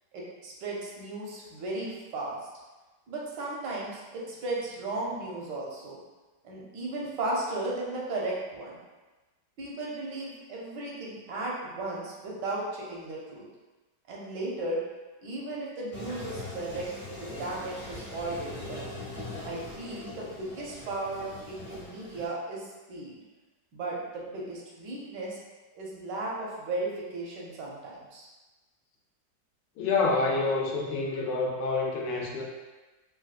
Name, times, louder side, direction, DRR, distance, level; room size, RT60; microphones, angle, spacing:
voice 1, 0.1-2.4 3.1-6.0 6.4-8.8 9.6-13.4 14.1-14.8 15.2-16.9 17.2-18.9 19.4-23.2 23.7-25.4 25.8-28.3, right 2 dB, 80° right, -4 dB, 1.4 m, -35 dB
Toilet flush, 15.9-22.3, left 2 dB, 50° left, 1.0 m, -41 dB
voice 2, 29.8-32.4, left 3 dB, 80° left, -1 dB, 1.3 m, -27 dB
4.1 x 2.2 x 2.4 m, 1.2 s
omnidirectional pair, 1.9 m